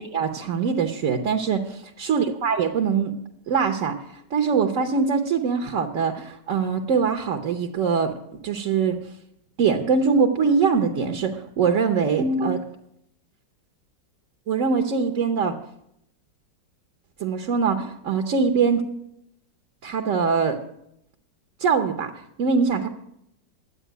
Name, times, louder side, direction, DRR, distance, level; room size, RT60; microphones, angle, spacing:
voice 1, 0.0-3.1 3.5-4.0 4.3-8.1 8.4-9.0 9.6-12.6 14.5-15.6 17.2-18.8 19.8-20.6 21.6-22.1 22.4-22.9, right 5 dB, 50° right, 5 dB, 1.1 m, -22 dB
11.0 x 8.4 x 9.3 m, 0.77 s
omnidirectional pair, 2.0 m